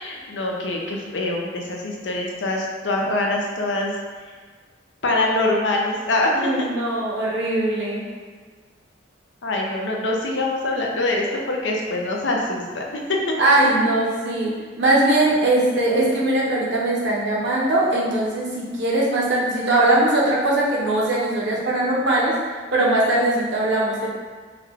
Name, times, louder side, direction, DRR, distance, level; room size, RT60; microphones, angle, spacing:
voice 1, 0.0-3.9 5.0-6.7 9.4-13.2, left 2 dB, 70° left, -1 dB, 0.6 m, -24 dB
voice 2, 6.3-8.0 13.4-24.1, right 2 dB, 65° right, -5 dB, 0.9 m, -20 dB
4.8 x 2.4 x 3.4 m, 1.5 s
head